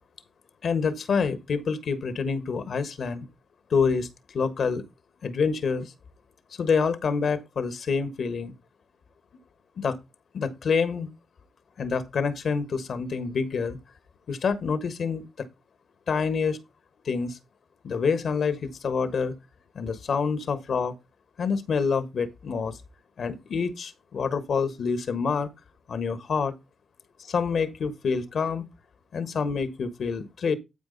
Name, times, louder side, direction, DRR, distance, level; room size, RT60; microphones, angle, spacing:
voice 1, 0.6-3.3 3.7-4.8 5.2-5.9 6.6-8.5 9.8-10.0 10.3-11.1 11.8-13.8 14.3-15.5 16.1-16.6 17.0-17.4 17.8-19.3 19.7-20.9 21.4-22.8 23.2-25.5 25.9-26.5 27.2-28.6 29.1-30.5, left 5 dB, 70° left, 1.4 m, -27 dB
12.5 x 4.7 x 3.9 m
supercardioid pair, 45°, 0 cm